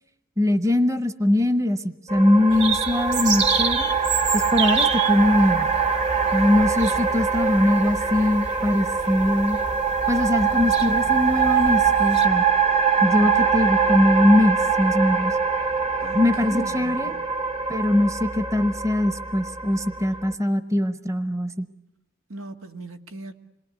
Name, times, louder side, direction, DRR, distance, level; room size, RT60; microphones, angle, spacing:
voice 1, 0.4-3.9 4.3-5.7 6.3-9.6 10.1-12.4 13.0-15.4 16.1-17.1 17.7-21.7, left 1 dB, 15° right, 1.0 m, -21 dB
sound 1, 2.1-20.3, right 6 dB, 30° right, 1.2 m, -23 dB
sound 2, 2.5-12.3, right 5 dB, 55° right, 2.4 m, -29 dB
voice 2, 13.0-13.5 16.0-17.2 20.1-20.2 22.3-23.3, right 2 dB, 85° right, 1.9 m, -39 dB
27.0 x 21.5 x 9.5 m
head